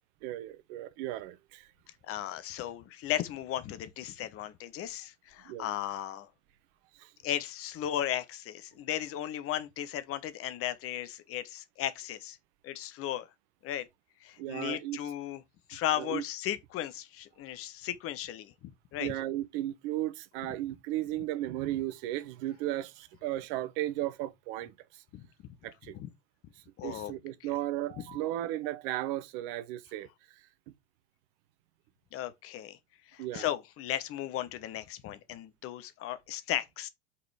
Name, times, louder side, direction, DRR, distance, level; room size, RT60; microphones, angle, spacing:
voice 1, 0.2-1.7 5.4-5.7 7.0-7.1 14.4-15.0 15.9-16.2 19.0-24.7 25.6-25.9 26.8-30.1 33.2-33.5, right 14 dB, 50° right, 1.0 m, -35 dB
voice 2, 2.1-6.3 7.2-12.4 12.6-13.3 13.6-13.9 14.2-15.4 15.7-19.1 25.1-25.3 25.8-26.1 26.8-27.1 27.4-27.5 32.1-32.8 33.1-36.9, left 12 dB, 40° left, 1.1 m, -36 dB
5.6 x 4.1 x 4.9 m
figure-of-eight pair, 75°, 34 cm